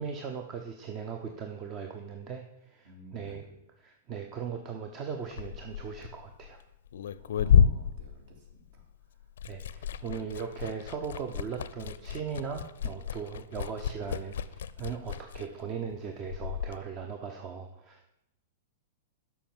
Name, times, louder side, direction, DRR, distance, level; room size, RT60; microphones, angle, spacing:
voice 1, 0.0-3.4 3.8-6.6 9.5-18.1, right 6 dB, 35° right, 5 dB, 0.9 m, -38 dB
voice 2, 2.8-3.6 7.2-9.3, left 1 dB, 55° right, 1 dB, 3.0 m, -54 dB
Liquid, 5.2-8.9 9.2-16.8, left 8 dB, 70° left, 0.4 m, -30 dB
7.2 x 5.7 x 7.3 m, 0.86 s
hypercardioid pair, 110°, 0 cm